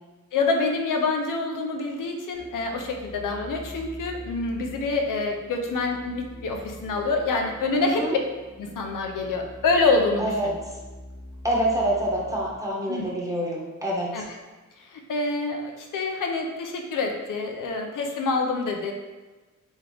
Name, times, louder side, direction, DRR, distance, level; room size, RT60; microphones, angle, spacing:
voice 1, 0.3-8.1 8.6-10.5 12.9-13.1 14.1-14.2 14.9-18.9, left 3 dB, 85° left, 3 dB, 0.6 m, -26 dB
sound 1, 2.3-12.6, equal, 40° right, 0.9 m, -44 dB
voice 2, 7.8-8.2 10.2-10.5 11.4-14.2, right 1 dB, 10° right, -4 dB, 1.0 m, -26 dB
3.4 x 3.1 x 3.8 m, 1.2 s
cardioid pair, 85°, 31 cm